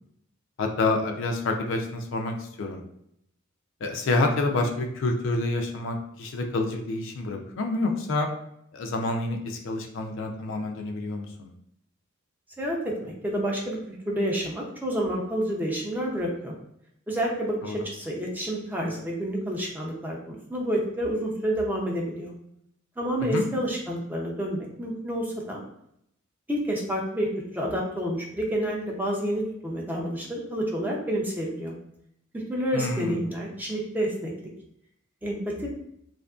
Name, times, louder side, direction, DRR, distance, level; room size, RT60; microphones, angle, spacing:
voice 1, 0.6-2.8 3.8-8.3 8.7-11.5 17.6-17.8 23.2-23.4 32.7-33.3, left 2 dB, 60° left, 3 dB, 0.4 m, -28 dB
voice 2, 12.6-13.8 14.1-16.5 17.1-22.3 23.0-25.6 26.5-31.7 32.3-34.3 35.2-35.7, equal, 10° right, -2 dB, 0.4 m, -29 dB
2.7 x 2.5 x 2.3 m, 0.73 s
head